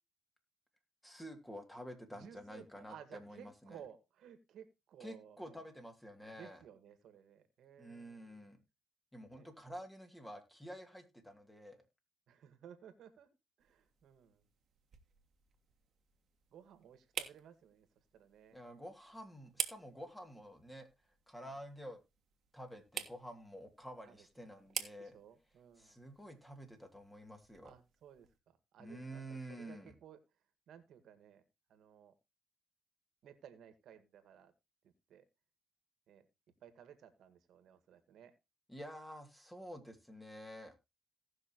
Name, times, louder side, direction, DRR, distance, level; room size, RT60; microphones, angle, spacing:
voice 1, 1.0-3.8 5.0-6.6 7.8-8.6 9.1-11.8 18.5-20.9 21.3-22.0 22.5-25.2 25.8-27.7 28.8-29.9 38.7-40.7, equal, 10° left, 5 dB, 2.5 m, -50 dB
voice 2, 2.1-5.6 6.3-8.5 9.3-9.5 12.3-13.3 13.6-14.4 16.5-17.9 18.1-18.6 21.4-21.6 24.0-24.3 24.5-24.7 25.0-26.0 27.6-30.2 30.7-31.4 31.7-32.1 33.2-34.5 35.1-35.2 36.1-36.3 36.6-38.3, right 9 dB, 75° right, 10 dB, 1.7 m, -57 dB
sound 1, 13.6-28.4, right 8 dB, 60° right, 1.4 m, -49 dB
18.0 x 6.0 x 3.0 m, 0.24 s
cardioid pair, 90°, 0 cm